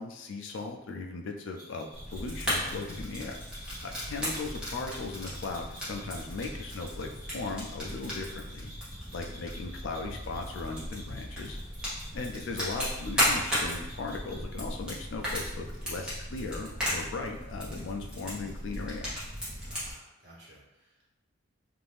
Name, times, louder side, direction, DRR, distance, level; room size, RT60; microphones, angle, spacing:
voice 1, 0.0-3.4 3.8-8.7 9.1-11.6 12.1-19.1, left 3 dB, 65° left, 2 dB, 0.4 m, -38 dB
sound 1, 1.6-14.6, right 1 dB, 20° left, 1.2 m, -52 dB
Fire, 1.9-19.9, equal, 5° right, 0.9 m, -35 dB
voice 2, 19.7-21.0, equal, 50° right, -7 dB, 1.1 m, -55 dB
2.6 x 2.5 x 3.4 m, 0.92 s
head